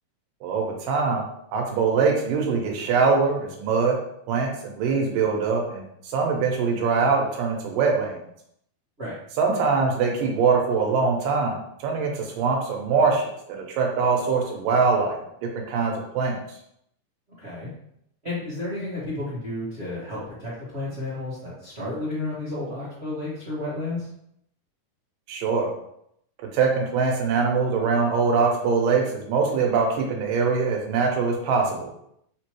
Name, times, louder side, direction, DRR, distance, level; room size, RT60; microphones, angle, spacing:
voice 1, 0.4-1.2 1.5-4.0 4.3-8.2 9.4-13.2 13.5-15.2 15.6-16.4 25.3-25.7 26.5-31.9, right 5 dB, 90° right, 1 dB, 2.5 m, -23 dB
voice 2, 17.4-17.7 18.2-24.1, left 2 dB, 65° right, -10 dB, 0.6 m, -32 dB
5.4 x 3.0 x 3.0 m, 0.74 s
omnidirectional pair, 3.8 m